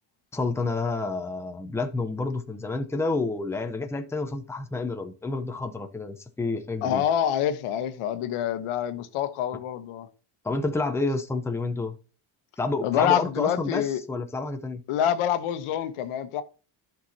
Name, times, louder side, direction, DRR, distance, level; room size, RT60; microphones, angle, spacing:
voice 1, 0.3-7.0 10.4-12.0 12.6-14.8, left 3 dB, 5° left, 0.7 m, -29 dB
voice 2, 6.8-10.1 12.8-14.0 14.9-16.4, left 10 dB, 80° left, 1.1 m, -26 dB
12.0 x 5.9 x 2.8 m
cardioid pair, 130°, 50 cm